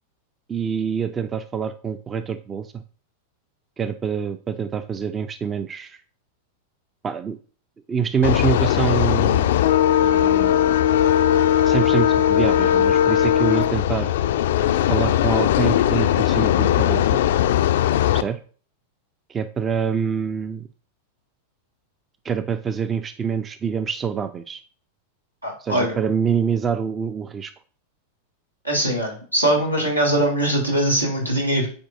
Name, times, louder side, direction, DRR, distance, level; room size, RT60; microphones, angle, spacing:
voice 1, 0.5-2.8 3.8-6.0 7.0-7.4 7.9-9.5 10.0-11.0 11.6-14.1 14.9-17.2 18.1-18.4 19.3-20.7 22.2-24.6 25.6-27.5, right 7 dB, 20° right, 11 dB, 0.4 m, -26 dB
sound 1, 8.2-18.2, left 11 dB, 55° left, 0.3 m, -19 dB
voice 2, 25.4-26.0 28.6-31.7, right 1 dB, 90° right, 0 dB, 1.7 m, -21 dB
8.6 x 4.6 x 2.5 m, 0.42 s
figure-of-eight pair, 90°, 0 cm